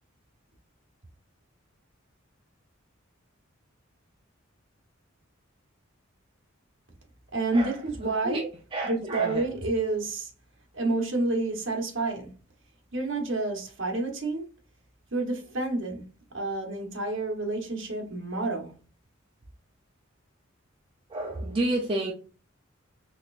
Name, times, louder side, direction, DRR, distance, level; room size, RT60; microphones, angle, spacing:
voice 1, 7.3-8.4 8.8-10.3 10.7-12.3 12.9-14.4 15.1-16.1 16.3-18.7, right 2 dB, 65° right, 1.1 m, -29 dB
voice 2, 8.2-9.4 21.1-22.1, right 1 dB, 25° right, 0.5 m, -30 dB
4.1 x 3.3 x 2.4 m
head